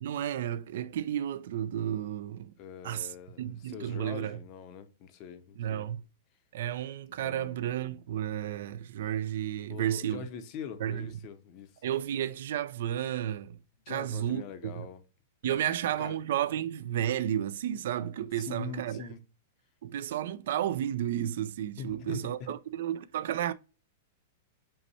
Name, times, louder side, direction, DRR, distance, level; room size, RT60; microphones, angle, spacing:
voice 1, 0.0-2.5 2.8-4.4 5.6-6.0 6.5-10.3 10.8-11.1 11.8-13.6 13.9-14.9 15.4-19.1 19.8-23.5, right 10 dB, 60° right, 0.3 m, -32 dB
voice 2, 2.6-5.9 7.1-7.7 9.7-11.8 13.9-15.0 15.5-16.2 18.4-19.2 21.8-22.5, left 7 dB, 30° left, 0.6 m, -43 dB
5.4 x 2.1 x 4.2 m
supercardioid pair, 170°, 0 cm